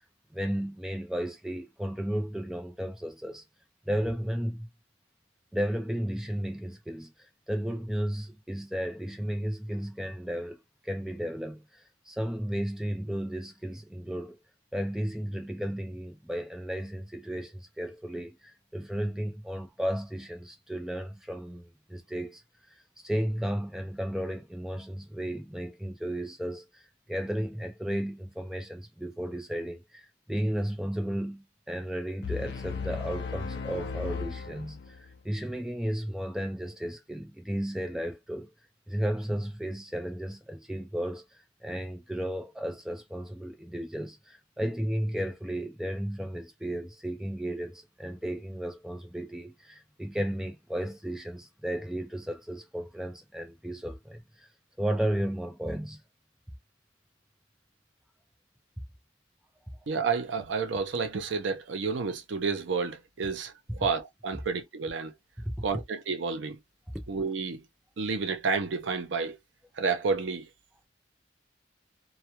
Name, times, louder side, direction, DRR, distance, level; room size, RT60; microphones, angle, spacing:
voice 1, 0.3-3.4 3.9-4.7 5.5-14.4 14.7-22.4 23.0-26.8 27.1-38.5 38.9-41.2 41.6-54.5 54.8-56.0 65.4-65.5 66.9-67.0, equal, 5° right, 0.4 m, -34 dB
sound 1, 32.2-35.2, left 5 dB, 65° left, 0.4 m, -36 dB
voice 2, 59.9-65.1 65.6-66.6 67.1-67.6 68.0-69.4 69.8-70.5, right 4 dB, 75° right, 0.5 m, -30 dB
2.3 x 2.2 x 2.9 m
head